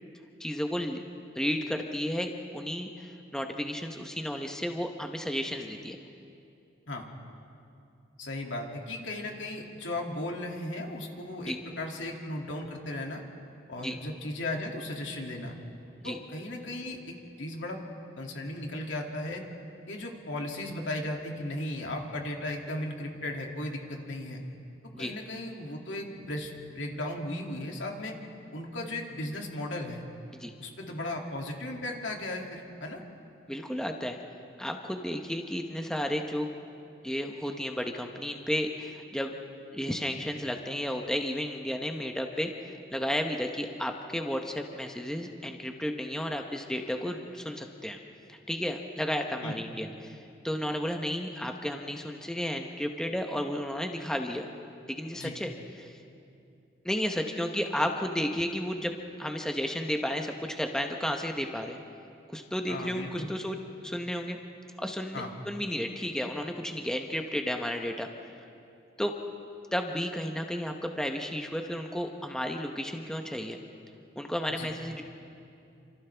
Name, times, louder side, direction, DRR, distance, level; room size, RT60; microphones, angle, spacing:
voice 1, 0.4-1.0 1.3-6.0 11.4-11.6 13.8-13.9 16.0-16.2 24.9-25.1 30.3-30.5 33.5-34.2 34.6-36.5 37.0-39.3 39.7-48.0 48.3-54.5 54.9-55.5 55.8-56.0 56.8-61.8 62.3-64.4 64.8-68.1 69.0-69.1 69.7-73.6 74.2-75.0, equal, 5° left, 3 dB, 0.9 m, -33 dB
voice 2, 8.2-13.2 13.7-15.6 16.0-17.8 18.2-19.4 19.9-24.4 25.0-28.2 28.5-30.0 30.6-33.0 49.4-49.6 55.2-55.4 62.7-63.3 65.1-65.3 74.5-74.7, left 1 dB, 80° left, 0 dB, 2.5 m, -36 dB
28.5 x 26.5 x 3.4 m, 2.6 s
head